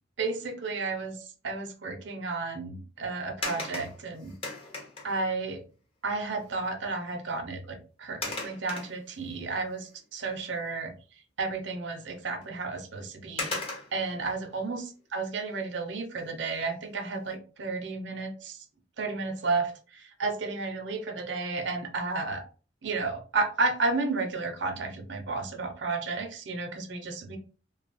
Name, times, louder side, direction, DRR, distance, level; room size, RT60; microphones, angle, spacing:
voice 1, 0.2-4.3 5.0-5.6 6.0-10.9 11.4-13.6 13.9-18.6 19.0-22.4 22.8-27.4, right 3 dB, 70° right, 5 dB, 0.6 m, -32 dB
sound 1, 3.4-5.2 6.4-6.5 6.9-7.2 8.2-9.4 9.9-10.0 12.4-12.5 13.4-14.1 16.4-16.8 17.2-17.3, left 2 dB, 30° left, 0.6 m, -37 dB
2.8 x 2.3 x 2.5 m, 0.37 s
head